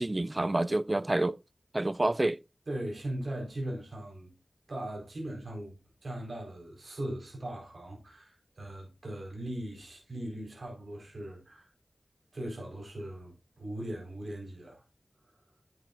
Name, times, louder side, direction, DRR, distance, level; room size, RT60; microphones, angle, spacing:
voice 1, 0.0-1.4 1.7-2.4, right 2 dB, 30° right, 0.4 m, -28 dB
voice 2, 2.7-4.3 4.7-5.8 6.0-11.7 12.3-14.8, right 1 dB, 75° right, 4.4 m, -39 dB
10.5 x 7.9 x 2.5 m
wide cardioid pair, 65°, 0 cm